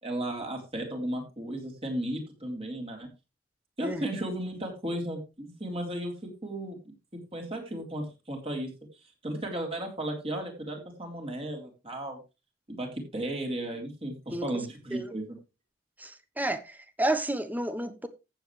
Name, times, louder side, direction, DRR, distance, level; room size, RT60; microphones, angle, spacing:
voice 1, 0.0-3.1 3.8-6.8 7.3-8.7 9.2-12.2 12.7-15.3, right 1 dB, 30° right, 3.6 m, -34 dB
voice 2, 16.0-18.1, right 1 dB, 10° right, 1.0 m, -31 dB
14.5 x 7.9 x 3.3 m
head